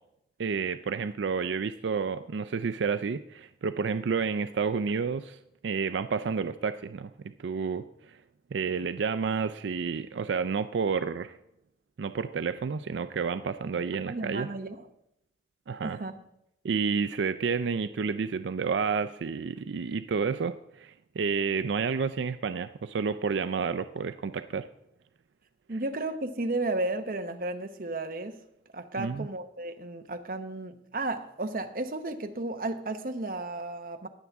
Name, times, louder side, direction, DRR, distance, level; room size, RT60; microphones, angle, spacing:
voice 1, 0.4-5.4 5.6-7.1 7.4-8.2 8.5-11.4 12.0-14.5 15.7-16.0 16.6-24.7 29.0-29.3, right 5 dB, 85° right, 0.4 m, -30 dB
voice 2, 13.9-14.9 15.8-16.2 25.7-28.4 28.7-34.1, right 2 dB, 50° right, 0.9 m, -33 dB
20.0 x 7.2 x 3.5 m
head